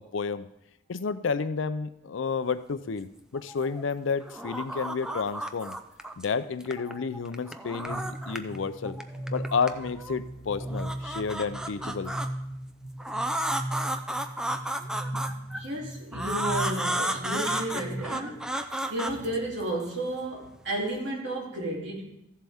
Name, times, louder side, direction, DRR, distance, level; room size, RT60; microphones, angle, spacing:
voice 1, 0.1-0.5 0.9-5.8 6.2-9.0 9.3-12.1 15.1-15.2, left 5 dB, 75° left, 13 dB, 0.5 m, -31 dB
sound 1, 3.3-3.9 4.2-6.2 6.6-8.6 8.8-10.2 10.6-12.3 13.0-15.6 16.1-19.9, right 1 dB, 5° right, 0.5 m, -33 dB
sound 2, 7.9-18.0, right 1 dB, 25° left, 1.6 m, -38 dB
voice 2, 15.5-18.4 18.9-22.0, right 1 dB, 65° right, -3 dB, 3.0 m, -32 dB
14.5 x 7.5 x 3.5 m, 0.82 s
head